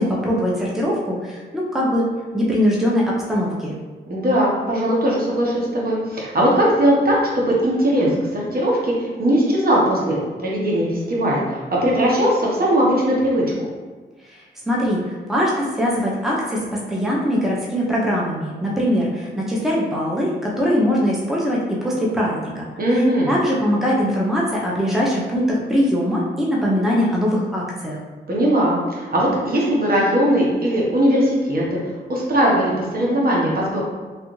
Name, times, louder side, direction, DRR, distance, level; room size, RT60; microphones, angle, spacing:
voice 1, 0.0-2.0 2.3-3.7 14.3-16.6 16.9-22.7 22.9-28.0, equal, ahead, -4 dB, 0.7 m, -21 dB
voice 2, 4.1-13.4 22.8-23.3 28.3-31.8 32.1-33.8, equal, 50° right, -4 dB, 1.0 m, -19 dB
3.2 x 2.5 x 3.1 m, 1.4 s
cardioid pair, 65°, 19 cm